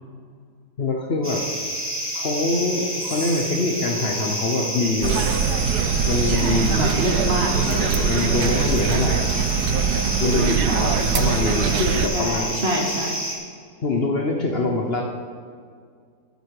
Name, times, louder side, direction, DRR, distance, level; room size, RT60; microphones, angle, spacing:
voice 1, 0.8-1.5 2.1-5.3 6.1-6.7 7.1-9.4 10.2-12.5 13.8-15.0, left 3 dB, 45° left, 1 dB, 1.0 m, -24 dB
sound 1, 1.2-13.4, equal, 10° right, 2.3 m, -29 dB
sound 2, 5.0-12.1, right 7 dB, 80° right, 1.2 m, -22 dB
voice 2, 6.2-7.5 12.1-13.1, equal, 40° right, 0 dB, 1.5 m, -25 dB
13.5 x 8.1 x 4.8 m, 2.1 s
omnidirectional pair, 1.7 m